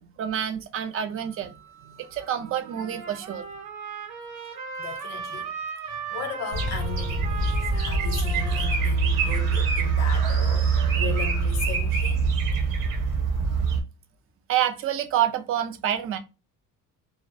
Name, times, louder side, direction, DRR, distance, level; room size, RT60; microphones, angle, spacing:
voice 1, 0.2-1.5 1.9-3.5 14.5-16.2, right 10 dB, 40° right, 0.4 m, -27 dB
Wind instrument woodwind instrument, 1.1-8.0, right 8 dB, 10° left, 0.5 m, -55 dB
Trumpet, 2.0-10.5, right 6 dB, 60° right, 0.9 m, -38 dB
voice 2, 4.8-5.5 5.8-12.3, left 7 dB, 50° left, 0.6 m, -37 dB
sound 1, 6.5-13.8, right 4 dB, 90° right, 1.0 m, -24 dB
2.3 x 2.1 x 2.5 m
cardioid pair, 145°, 34 cm